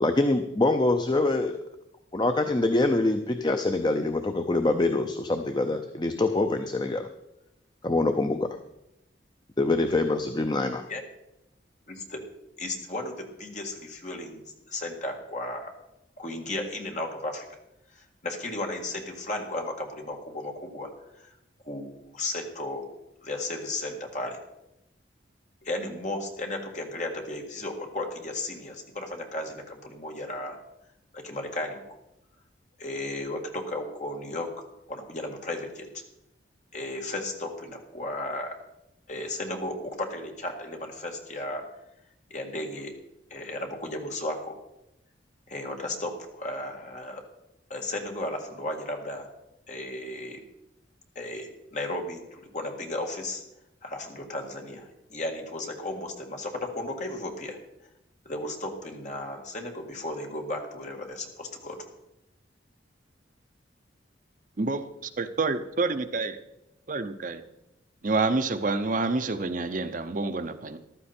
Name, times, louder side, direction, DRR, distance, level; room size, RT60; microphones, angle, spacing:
voice 1, 0.0-1.6 2.1-7.1 7.8-8.6 9.6-10.9, left 2 dB, 25° left, 7 dB, 0.6 m, -25 dB
voice 2, 11.9-12.2 12.6-15.7 16.2-17.5 17.9-20.9 21.2-21.3 21.6-22.8 23.2-24.4 25.6-30.6 31.1-31.8 32.8-34.5 34.9-35.9 36.7-38.6 39.1-41.7 42.3-42.9 43.3-44.6 45.5-47.2 47.7-49.3 49.7-50.4 51.2-53.4 53.8-57.6 58.3-61.8, left 1 dB, 40° left, 2 dB, 1.9 m, -34 dB
voice 3, 65.2-66.4 66.9-67.4 68.0-70.8, right 3 dB, 45° right, 10 dB, 0.6 m, -28 dB
14.5 x 12.0 x 4.3 m, 0.88 s
head